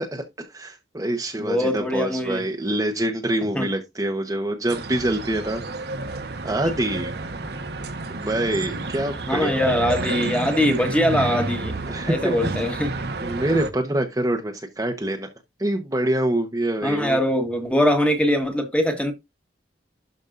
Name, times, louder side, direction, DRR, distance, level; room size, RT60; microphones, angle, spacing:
voice 1, 0.0-5.6 6.4-7.1 8.1-9.7 11.9-12.5 13.2-15.3 15.6-17.2, right 1 dB, 20° right, 0.9 m, -25 dB
voice 2, 1.4-2.4 3.5-3.7 9.3-11.8 12.0-12.9 16.8-19.1, equal, 5° left, 1.4 m, -22 dB
sound 1, 4.7-13.7, right 3 dB, 60° right, 1.1 m, -30 dB
12.0 x 5.3 x 2.5 m
head